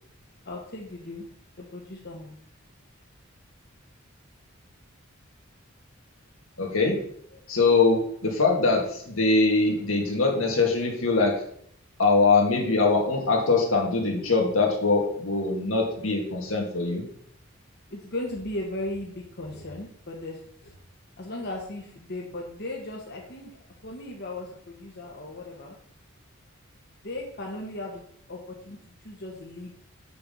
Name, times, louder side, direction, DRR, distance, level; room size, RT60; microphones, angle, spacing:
voice 1, 0.4-1.2 1.6-2.3 17.9-20.7 21.2-25.7 27.0-28.0 28.3-28.4 28.6-28.8 29.0-29.7, left 1 dB, 50° left, -1 dB, 1.3 m, -37 dB
voice 2, 6.6-7.0 7.5-11.3 12.0-17.0, left 3 dB, 80° left, 0 dB, 2.4 m, -22 dB
6.7 x 5.7 x 7.0 m, 0.66 s
head